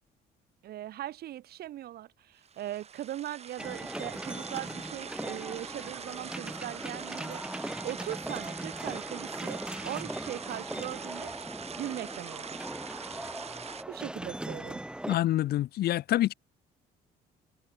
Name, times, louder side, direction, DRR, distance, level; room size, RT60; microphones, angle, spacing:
voice 1, 0.6-7.4 7.8-11.5 11.8-12.6 13.9-14.8, right 13 dB, 65° right, 6.2 m, -40 dB
sound 1, 2.4-13.8, right 7 dB, 40° right, 4.5 m, -44 dB
sound 2, 3.6-15.2, right 1 dB, 5° right, 2.9 m, -39 dB
voice 2, 15.1-16.3, left 14 dB, 70° left, 3.0 m, -26 dB
cardioid pair, 110°, 17 cm